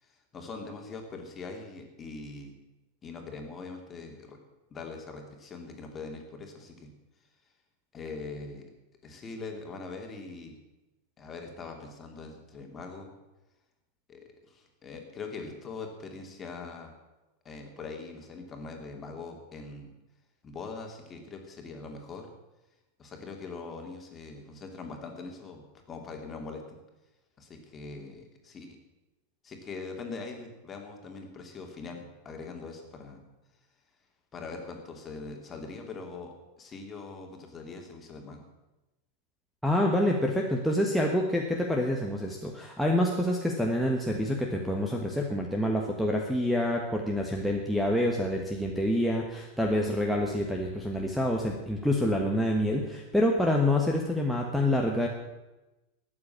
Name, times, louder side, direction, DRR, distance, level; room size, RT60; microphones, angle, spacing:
voice 1, 0.3-2.5 3.0-4.4 4.7-6.9 7.9-8.6 9.0-10.6 11.2-13.1 14.1-16.9 17.4-19.9 20.4-22.3 23.0-25.6 25.9-26.8 27.4-28.8 29.4-33.2 34.3-38.4, left 4 dB, 20° left, 3 dB, 2.6 m, -42 dB
voice 2, 39.6-55.1, left 1 dB, ahead, 1 dB, 1.4 m, -27 dB
13.0 x 8.8 x 8.6 m, 1.0 s
figure-of-eight pair, 90°, 0 cm